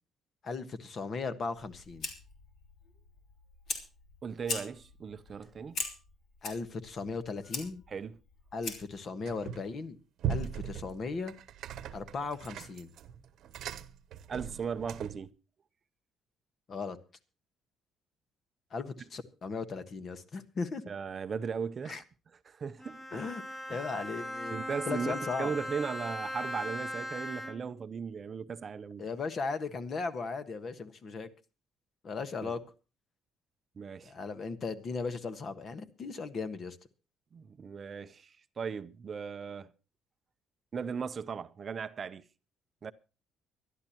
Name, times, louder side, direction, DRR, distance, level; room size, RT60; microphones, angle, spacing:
voice 1, 0.4-2.1 6.4-7.8 8.5-10.0 10.3-11.3 11.9-12.9 16.7-17.0 18.7-20.8 21.9-22.0 23.1-23.4 23.7-24.6 24.9-25.5 29.0-31.3 32.0-32.6 34.0-36.8, left 4 dB, 35° left, 1.4 m, -37 dB
Fire, 1.6-9.0, left 4 dB, 55° left, 3.2 m, -42 dB
voice 2, 4.2-5.8 7.9-8.2 14.3-15.3 20.9-22.0 22.4-23.3 23.7-23.8 24.5-29.0 32.4-32.5 33.8-34.1 37.3-39.7 40.7-42.2 42.8-42.9, right 6 dB, 35° right, 0.6 m, -37 dB
sound 1, 9.3-9.8 10.2-15.3, right 8 dB, 60° right, 1.0 m, -39 dB
Bowed string instrument, 22.8-27.8, equal, 15° left, 2.1 m, -39 dB
24.0 x 12.0 x 3.0 m
cardioid pair, 145°, 0 cm